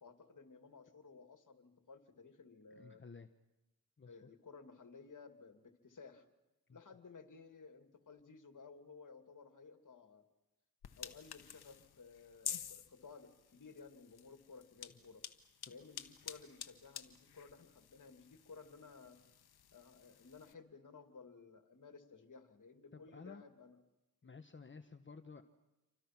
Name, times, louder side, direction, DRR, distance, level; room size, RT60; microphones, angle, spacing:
voice 1, 0.0-3.0 4.1-6.3 6.7-10.3 11.0-15.2 15.7-19.2 19.7-23.8 24.2-24.4, left 4 dB, 55° left, 7 dB, 2.6 m, -56 dB
voice 2, 2.8-3.3 4.0-4.3 6.7-6.8 15.7-15.8 22.9-23.4 24.2-25.4, left 4 dB, 30° left, 7 dB, 1.3 m, -54 dB
sound 1, 10.8-20.5, left 9 dB, 90° left, 1.3 m, -50 dB
29.0 x 24.5 x 6.0 m, 0.96 s
cardioid pair, 65°, 37 cm